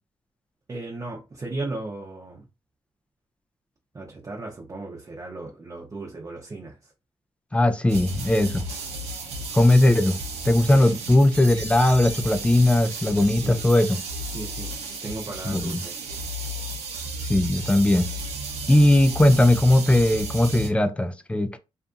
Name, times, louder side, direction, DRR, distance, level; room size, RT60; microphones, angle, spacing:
voice 1, 0.7-2.4 3.9-6.9 10.7-10.9 13.4-13.6 14.3-14.7 15.0-16.0 20.5-20.7, right 2 dB, 30° right, 0.7 m, -36 dB
voice 2, 7.5-8.6 9.5-10.2 10.5-14.0 15.5-15.8 17.3-18.1 18.7-21.6, left 1 dB, 10° left, 0.3 m, -19 dB
sound 1, 7.9-20.7, right 2 dB, 80° right, 0.7 m, -33 dB
2.6 x 2.5 x 2.3 m
cardioid pair, 90°, 11 cm